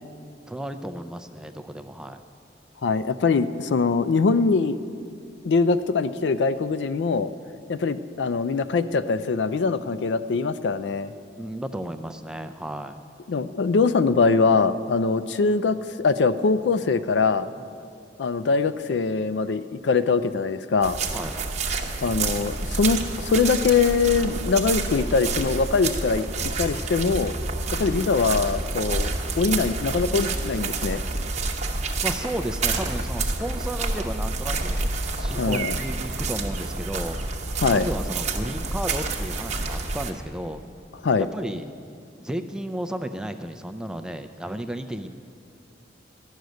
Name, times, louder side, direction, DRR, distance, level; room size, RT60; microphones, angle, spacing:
voice 1, 0.5-2.2 11.4-13.0 17.6-17.7 21.1-21.3 32.0-37.2 37.7-40.6 41.2-41.7 42.2-45.1, right 1 dB, 5° right, 8 dB, 0.4 m, -33 dB
voice 2, 2.8-4.8 5.4-7.3 7.7-11.1 13.3-17.5 18.2-21.0 22.0-26.2 26.6-27.3 27.8-31.0 35.4-35.7 37.6-37.9 41.0-41.3, left 4 dB, 70° left, 13 dB, 0.4 m, -22 dB
sound 1, 20.8-40.1, right 3 dB, 35° right, 0.9 m, -28 dB
12.0 x 6.4 x 9.2 m, 2.4 s
head